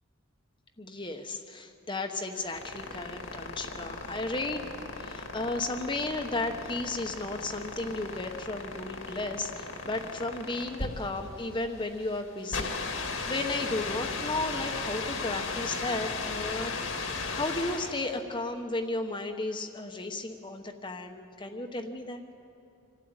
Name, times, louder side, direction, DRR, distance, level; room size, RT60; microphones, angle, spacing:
voice 1, 0.8-16.8 17.3-22.2, left 2 dB, 25° left, 5 dB, 1.0 m, -34 dB
sound 1, 2.2-18.1, left 4 dB, 65° left, 1.9 m, -36 dB
26.0 x 12.5 x 8.9 m, 2.6 s
head